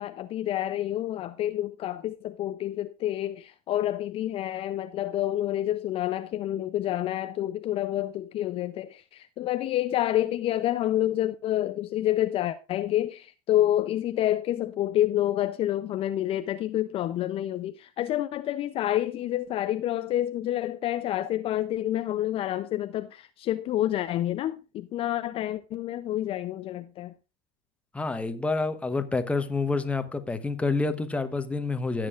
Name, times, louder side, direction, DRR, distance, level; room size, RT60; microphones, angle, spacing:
voice 1, 0.0-27.1, left 13 dB, 40° left, 0.5 m, -28 dB
voice 2, 27.9-32.1, left 3 dB, 10° left, 0.9 m, -28 dB
16.5 x 7.5 x 2.4 m
supercardioid pair, 125°, 15 cm